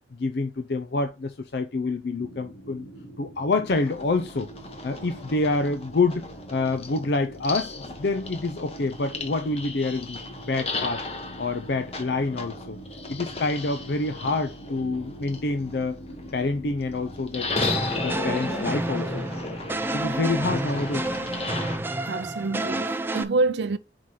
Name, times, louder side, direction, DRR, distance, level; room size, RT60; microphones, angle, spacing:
voice 1, 0.2-2.9 3.2-4.5 4.8-6.2 6.5-10.2 10.5-11.0 11.4-12.8 13.1-16.0 16.3-17.5 18.0-19.2 19.9-21.1, left 3 dB, 65° left, 0.5 m, -27 dB
sound 1, 2.2-21.7, right 1 dB, 80° left, 1.5 m, -44 dB
sound 2, 3.7-21.8, left 3 dB, 35° left, 1.1 m, -36 dB
sound 3, 17.6-23.2, right 1 dB, 10° right, 0.4 m, -29 dB
voice 2, 22.1-23.8, right 3 dB, 75° right, 0.5 m, -26 dB
4.8 x 3.9 x 5.6 m
head